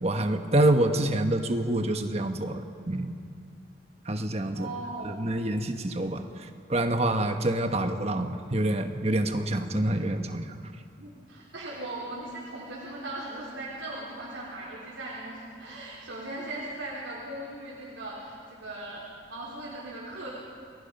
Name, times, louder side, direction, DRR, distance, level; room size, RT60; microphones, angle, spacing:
voice 1, 0.0-3.1 4.1-4.7 5.0-6.2 6.7-10.5, right 1 dB, 35° right, 6 dB, 1.3 m, -26 dB
voice 2, 4.5-5.1 11.0-20.3, right 2 dB, 75° right, -7 dB, 4.6 m, -38 dB
29.5 x 21.0 x 5.5 m, 2.3 s
head